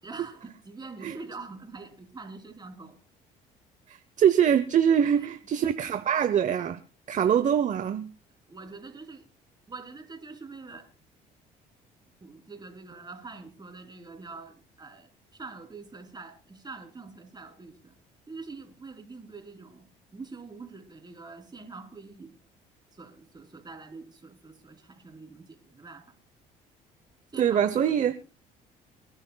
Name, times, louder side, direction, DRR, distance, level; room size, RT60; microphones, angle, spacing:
voice 1, 0.0-3.0 5.6-5.7 7.1-7.3 8.5-9.3 9.7-10.9 12.2-18.0 18.3-22.4 22.9-26.2 27.3-28.1, right 3 dB, 25° right, 3.5 m, -45 dB
voice 2, 3.9-6.8 7.1-8.1 27.4-28.1, right 8 dB, 45° right, 0.8 m, -23 dB
27.0 x 11.0 x 2.3 m
supercardioid pair, 75°, 18 cm